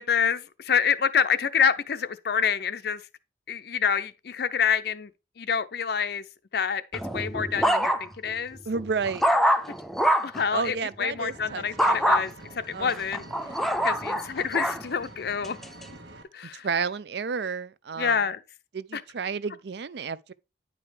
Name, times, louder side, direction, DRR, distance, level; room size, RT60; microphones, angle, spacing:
voice 1, 0.0-3.0 3.5-5.1 5.4-6.2 6.5-8.6 10.2-13.2 13.8-15.6 16.3-16.7 18.0-18.4 18.9-19.0, left 7 dB, 60° left, 0.5 m, -27 dB
sound 1, 6.9-8.3 8.7-10.4 11.8-12.2 12.9-14.8 15.4-15.8, equal, ahead, 0.6 m, -24 dB
voice 2, 8.7-9.3 10.5-12.0 12.7-13.0 13.4-13.8 16.6-18.2 18.7-20.3, right 5 dB, 60° right, 0.5 m, -31 dB
Engine, 11.2-16.2, right 2 dB, 85° right, 1.7 m, -46 dB
9.6 x 5.1 x 3.3 m
head